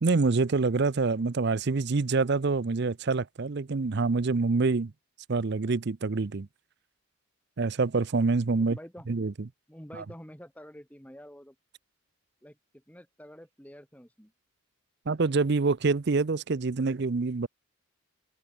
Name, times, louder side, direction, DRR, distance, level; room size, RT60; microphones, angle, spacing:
voice 1, 0.0-4.9 5.3-6.5 7.6-8.8 9.1-9.3 15.1-17.5, right 4 dB, 50° right, 0.5 m, -26 dB
voice 2, 8.6-9.1 9.7-11.6 12.4-14.3, equal, 5° left, 3.1 m, -48 dB
head